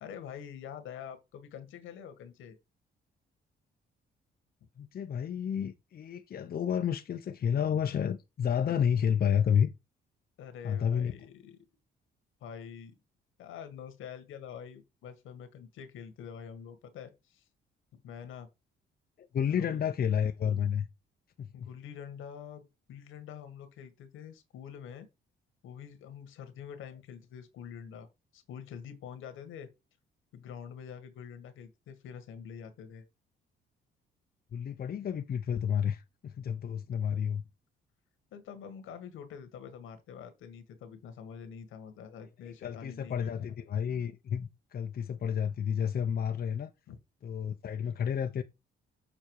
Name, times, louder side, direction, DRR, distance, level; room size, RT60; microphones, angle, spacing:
voice 1, 0.0-2.6 10.4-11.7 12.4-12.9 13.4-17.4 17.9-18.5 19.6-19.8 21.5-22.6 22.9-25.1 25.6-29.7 30.3-33.0 38.3-43.3 46.9-47.0, left 8 dB, 85° left, 1.6 m, -46 dB
voice 2, 4.8-9.7 10.6-11.1 19.2-20.9 21.4-21.5 34.5-37.4 42.4-46.7 47.2-48.4, left 8 dB, 50° left, 0.8 m, -30 dB
6.9 x 4.2 x 4.7 m
cardioid pair, 90°, 20 cm